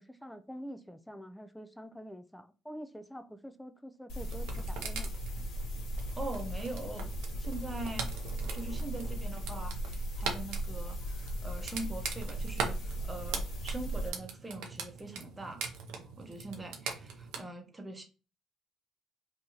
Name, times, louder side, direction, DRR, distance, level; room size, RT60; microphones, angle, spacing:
voice 1, 0.0-5.1, equal, 5° left, 0.4 m, -46 dB
sound 1, 4.1-14.1, equal, 75° left, 1.1 m, -37 dB
sound 2, 4.2-17.4, right 5 dB, 85° right, 0.7 m, -42 dB
voice 2, 6.1-7.1 7.4-8.1 8.5-15.6 16.2-18.0, right 2 dB, 15° right, 0.9 m, -42 dB
2.9 x 2.7 x 3.8 m
cardioid pair, 90°, 0 cm